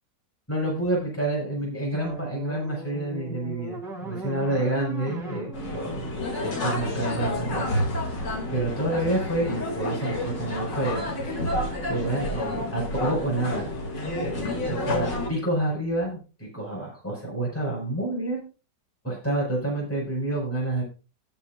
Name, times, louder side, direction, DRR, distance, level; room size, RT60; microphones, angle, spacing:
voice 1, 0.5-6.1 6.4-7.8 8.1-13.7 14.2-18.4 19.0-20.8, right 1 dB, 5° left, -4 dB, 5.2 m, -29 dB
sound 1, 1.9-7.1, right 2 dB, 50° right, 3.2 m, -39 dB
sound 2, 5.5-15.3, left 1 dB, 75° left, 3.4 m, -29 dB
19.5 x 7.3 x 2.5 m, 0.34 s
omnidirectional pair, 1.9 m